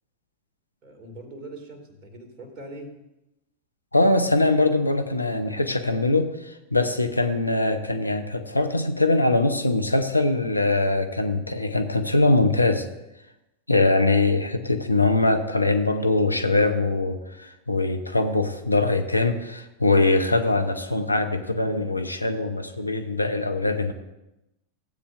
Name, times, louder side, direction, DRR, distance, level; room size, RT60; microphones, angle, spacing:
voice 1, 0.8-2.9 15.8-16.2, right 1 dB, 35° right, 3 dB, 2.4 m, -42 dB
voice 2, 3.9-12.9 13.7-23.9, left 2 dB, 85° left, 7 dB, 0.7 m, -22 dB
15.5 x 8.4 x 2.6 m, 0.91 s
figure-of-eight pair, 90°, 0 cm